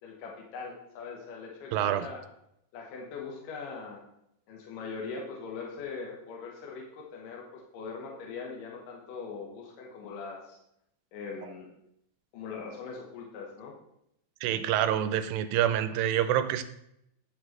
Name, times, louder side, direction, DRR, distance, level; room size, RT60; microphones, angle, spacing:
voice 1, 0.0-2.2 2.7-4.0 4.5-10.6 11.1-11.7 12.3-13.7, left 5 dB, 75° left, -1 dB, 2.7 m, -41 dB
voice 2, 1.7-2.1 14.4-16.6, right 11 dB, 85° right, 11 dB, 2.3 m, -27 dB
10.0 x 6.1 x 3.2 m, 0.78 s
omnidirectional pair, 4.0 m